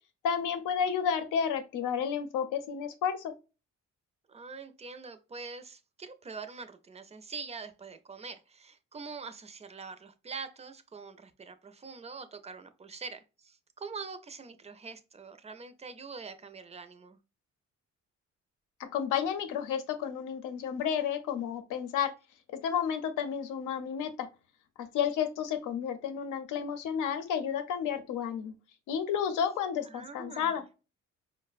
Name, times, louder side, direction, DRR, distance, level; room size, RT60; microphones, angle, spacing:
voice 1, 0.2-3.3 18.9-22.1 22.5-24.3 24.8-28.5 28.9-30.6, left 8 dB, 85° left, 0.7 m, -31 dB
voice 2, 4.3-17.2 29.8-30.6, right 4 dB, 20° right, 0.5 m, -44 dB
4.7 x 2.1 x 2.4 m
cardioid pair, 90°, 30 cm